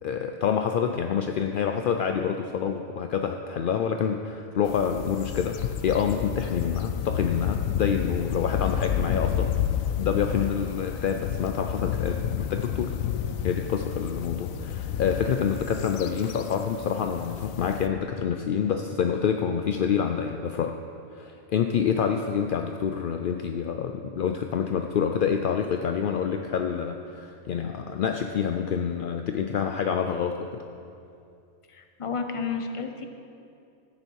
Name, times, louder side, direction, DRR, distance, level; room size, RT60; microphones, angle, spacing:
voice 1, 0.0-9.5 10.0-12.9 13.4-20.7 21.1-30.6, left 7 dB, 65° left, 5 dB, 0.5 m, -27 dB
sound 1, 4.6-17.9, left 9 dB, 85° left, 1.0 m, -30 dB
voice 2, 31.7-33.1, left 5 dB, 30° left, 5 dB, 0.7 m, -31 dB
13.5 x 9.7 x 4.6 m, 2.6 s
omnidirectional pair, 1.4 m